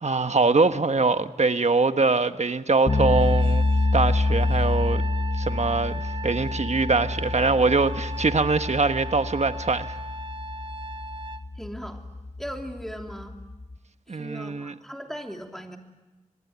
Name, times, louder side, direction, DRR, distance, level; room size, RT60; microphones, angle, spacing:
voice 1, 0.0-5.0 5.4-9.9 14.1-14.7, right 3 dB, 60° right, 1.3 m, -23 dB
sound 1, 2.9-13.8, left 2 dB, 50° left, 1.4 m, -27 dB
Trumpet, 2.9-11.4, right 1 dB, 40° right, 1.1 m, -37 dB
voice 2, 11.5-12.0 12.4-13.3 14.1-15.8, equal, 5° left, 3.1 m, -38 dB
25.0 x 21.0 x 9.5 m
wide cardioid pair, 45°, 13 cm